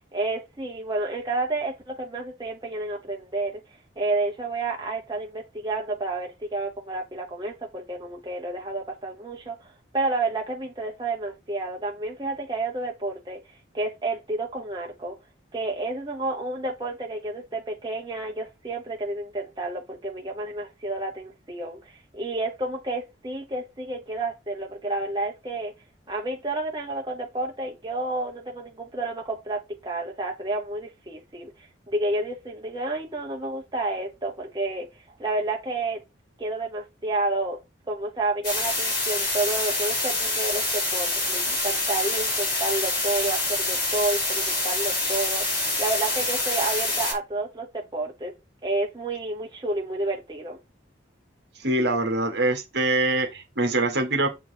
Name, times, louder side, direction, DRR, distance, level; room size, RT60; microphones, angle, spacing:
voice 1, 0.1-3.6 4.0-15.2 15.5-25.7 26.1-31.5 31.9-34.9 35.2-36.0 36.4-37.6 37.9-48.3 48.6-50.6, right 2 dB, 20° right, 1.1 m, -30 dB
sound 1, 38.4-47.1, left 2 dB, 50° left, 4.4 m, -26 dB
voice 2, 51.6-54.3, right 2 dB, 55° right, 1.6 m, -24 dB
7.6 x 4.4 x 4.4 m
head